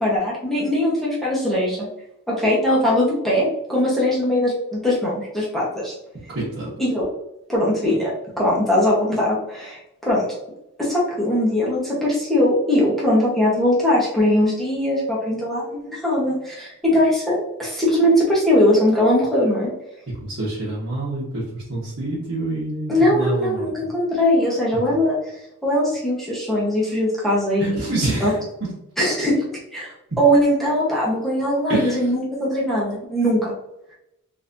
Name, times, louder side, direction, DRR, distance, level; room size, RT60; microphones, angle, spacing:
voice 1, 0.0-1.9 2.3-5.9 6.8-7.1 7.5-10.3 10.8-19.7 22.9-25.2 25.6-27.9 28.2-28.3 29.0-29.9 30.2-33.5, left 1 dB, ahead, -6 dB, 1.0 m, -20 dB
voice 2, 6.3-6.8 20.2-23.9 24.9-25.0 27.6-28.4 31.7-32.0, right 2 dB, 55° right, -10 dB, 1.2 m, -27 dB
4.0 x 2.7 x 2.6 m, 0.84 s
head